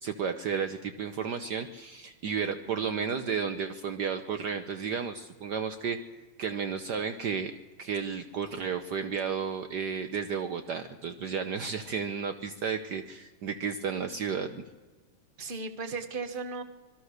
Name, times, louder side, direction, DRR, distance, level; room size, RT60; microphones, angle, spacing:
voice 1, 0.0-6.0 6.4-7.5 7.8-14.6, right 6 dB, 60° right, 9 dB, 1.4 m, -32 dB
voice 2, 2.7-3.3 15.4-16.6, right 4 dB, 30° right, 8 dB, 1.6 m, -37 dB
26.0 x 21.0 x 6.6 m, 1.2 s
omnidirectional pair, 2.2 m